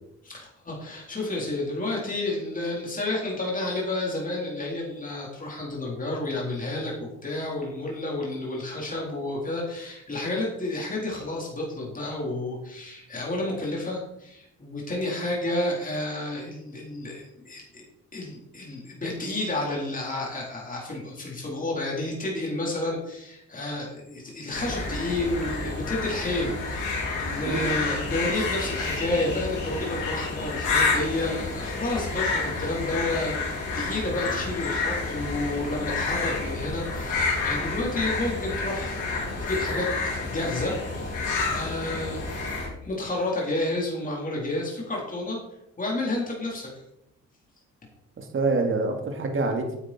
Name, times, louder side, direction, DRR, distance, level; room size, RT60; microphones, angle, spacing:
voice 1, 0.2-17.8 18.1-39.0 39.4-42.3 42.8-45.4 45.8-46.7, left 2 dB, 25° left, -3 dB, 4.2 m, -30 dB
sound 1, 24.5-42.7, left 3 dB, 85° left, 4.3 m, -29 dB
voice 2, 48.2-49.8, right 3 dB, 45° right, 3 dB, 2.4 m, -26 dB
9.9 x 8.5 x 4.5 m, 0.80 s
cardioid pair, 90°, 30 cm